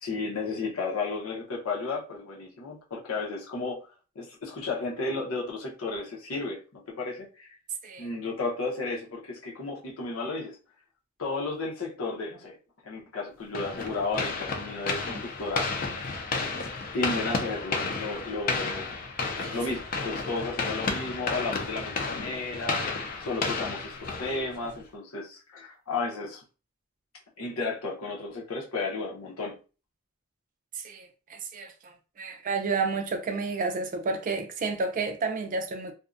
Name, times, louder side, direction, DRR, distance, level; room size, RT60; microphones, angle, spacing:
voice 1, 0.0-3.9 4.2-7.6 8.0-10.6 11.2-12.6 12.8-15.7 16.9-18.9 19.5-22.8 23.2-26.4 27.4-29.6, left 3 dB, 85° left, 0.8 m, -33 dB
sound 1, 13.5-24.8, left 4 dB, 40° left, 0.4 m, -32 dB
voice 2, 30.8-35.9, right 4 dB, 40° right, 0.4 m, -31 dB
2.5 x 2.1 x 2.4 m
head